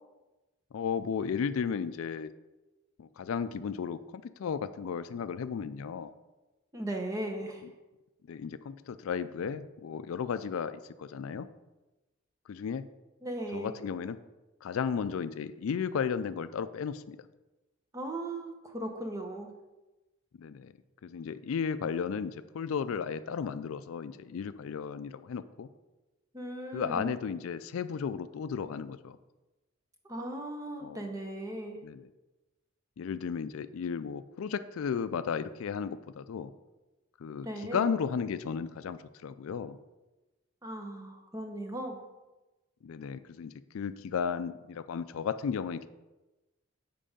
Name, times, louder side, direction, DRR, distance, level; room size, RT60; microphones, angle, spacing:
voice 1, 0.7-2.3 3.0-6.1 8.3-11.5 12.5-12.9 13.5-14.2 14.6-17.2 20.4-20.7 21.0-25.7 26.7-29.2 30.8-31.0 31.8-32.0 33.0-36.5 37.2-39.8 42.8-45.9, left 6 dB, 75° left, 13 dB, 0.4 m, -34 dB
voice 2, 6.7-7.6 13.2-13.8 17.9-19.5 26.3-27.1 30.0-31.8 37.4-37.9 40.6-42.0, right 1 dB, 15° right, 3 dB, 0.9 m, -37 dB
7.6 x 4.8 x 5.1 m, 1.1 s
head